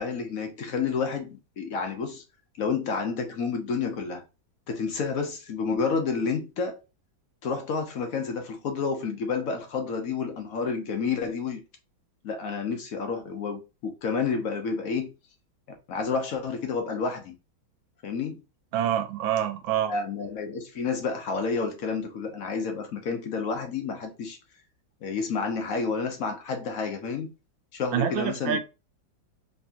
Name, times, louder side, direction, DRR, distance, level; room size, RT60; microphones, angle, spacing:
voice 1, 0.0-2.2 2.6-4.2 4.7-6.8 7.4-11.6 12.2-15.1 15.9-17.4 18.0-18.4 19.8-24.4 25.0-27.3 27.7-28.6, left 5 dB, 65° left, 0.9 m, -30 dB
voice 2, 18.7-19.9 27.9-28.6, right 10 dB, 85° right, 1.4 m, -26 dB
4.3 x 2.9 x 2.8 m
omnidirectional pair, 2.1 m